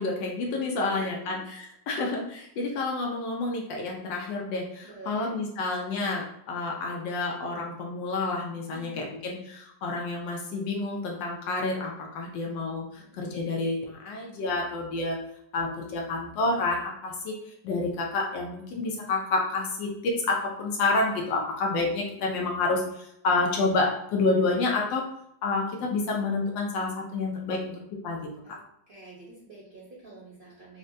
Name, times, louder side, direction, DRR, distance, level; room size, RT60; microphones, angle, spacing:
voice 1, 0.0-15.2 15.5-17.3 17.6-25.0 25.4-27.7 28.0-28.2, left 3 dB, 85° left, -1 dB, 1.3 m, -29 dB
voice 2, 0.9-1.3 4.0-4.1 4.8-5.3 8.7-9.0 13.0-13.4 28.4-28.6 28.9-30.8, right 3 dB, 45° right, -6 dB, 0.7 m, -47 dB
4.3 x 2.1 x 2.5 m, 0.77 s
omnidirectional pair, 1.9 m